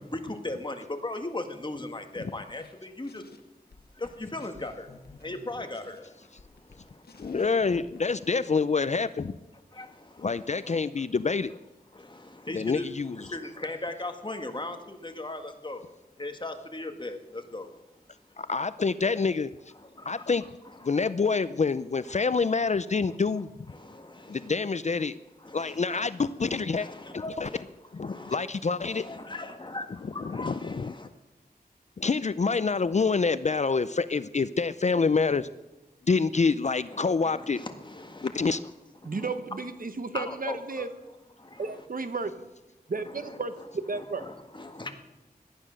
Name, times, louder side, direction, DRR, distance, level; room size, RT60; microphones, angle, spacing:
voice 1, 0.0-3.2 3.9-7.5 9.7-11.1 11.9-18.4 19.1-19.2 19.7-21.1 22.1-22.2 23.1-23.2 23.7-24.5 25.4-26.1 26.4-28.4 28.8-31.1 36.9-38.6 39.0-39.4 40.1-40.9 41.4-41.9 43.1-43.4 43.9-44.9, left 2 dB, 30° left, 6 dB, 1.7 m, -39 dB
sound 1, 2.5-2.8 3.0-3.4 3.7-8.1, left 3 dB, 85° left, 1.3 m, -53 dB
voice 2, 7.2-9.3 10.2-11.5 12.5-13.2 18.4-19.5 20.1-20.4 20.8-23.5 24.3-25.2 25.5-26.9 27.1-27.5 27.9-29.0 30.4-30.9 32.0-35.5 36.1-37.6 38.2-38.6, left 4 dB, 45° left, 14 dB, 0.5 m, -26 dB
voice 3, 39.0-40.9 41.6-42.5 42.9-44.2, right 4 dB, 60° right, 10 dB, 1.2 m, -33 dB
17.5 x 12.0 x 6.4 m, 1.0 s
wide cardioid pair, 85°, 16 cm